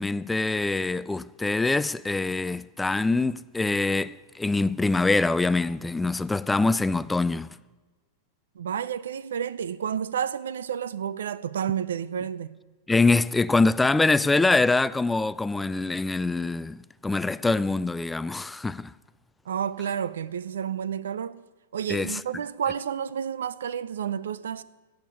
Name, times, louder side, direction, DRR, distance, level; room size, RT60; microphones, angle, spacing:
voice 1, 0.0-7.5 12.9-18.9 21.9-22.2, left 3 dB, 10° left, 0.3 m, -24 dB
voice 2, 8.6-12.5 19.5-21.4 21.7-24.6, right 8 dB, 85° right, 0.6 m, -30 dB
15.5 x 8.0 x 8.1 m
hypercardioid pair, 130°, 0 cm